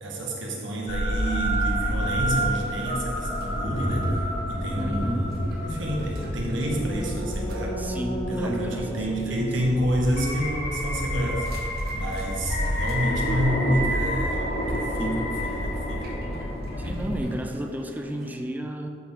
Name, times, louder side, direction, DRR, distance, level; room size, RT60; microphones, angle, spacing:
voice 1, 0.0-4.1 4.5-5.3 5.6-7.8 8.3-11.5 11.9-16.2, equal, 90° right, -2 dB, 1.6 m, -29 dB
sound 1, 0.9-17.2, equal, 50° left, 1.3 m, -29 dB
sound 2, 1.1-18.4, left 1 dB, 55° right, 1.2 m, -46 dB
sound 3, 2.0-3.1 4.0-4.9 6.0-6.7 8.0-8.5, equal, 20° left, 1.9 m, -38 dB
voice 2, 4.8-5.4 7.8-9.5 15.0-15.3 16.8-18.9, right 1 dB, 10° right, 3 dB, 0.4 m, -33 dB
13.0 x 4.4 x 3.9 m, 2.5 s
head